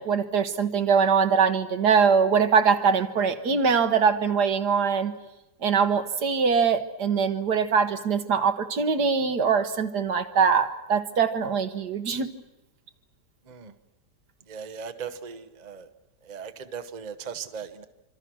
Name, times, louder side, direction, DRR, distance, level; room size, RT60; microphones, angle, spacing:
voice 1, 0.0-5.1 5.6-12.3, right 6 dB, 70° right, 9 dB, 1.8 m, -22 dB
voice 2, 14.5-15.9 16.2-17.8, right 6 dB, 30° right, 9 dB, 0.9 m, -38 dB
26.0 x 26.0 x 6.2 m, 0.98 s
omnidirectional pair, 1.8 m